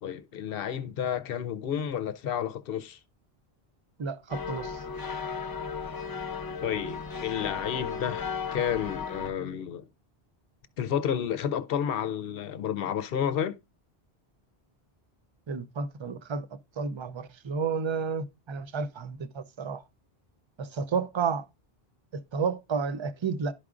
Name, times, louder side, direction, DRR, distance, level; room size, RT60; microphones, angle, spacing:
voice 1, 0.0-3.0 6.6-9.9 10.8-13.6, left 9 dB, 70° left, 0.8 m, -31 dB
voice 2, 4.0-4.8 15.5-16.5 16.8-19.8 20.6-21.5 22.1-23.5, right 5 dB, 45° right, 0.4 m, -31 dB
church bells, 4.3-9.3, left 5 dB, 30° left, 0.4 m, -35 dB
11.5 x 4.8 x 2.4 m
omnidirectional pair, 1.0 m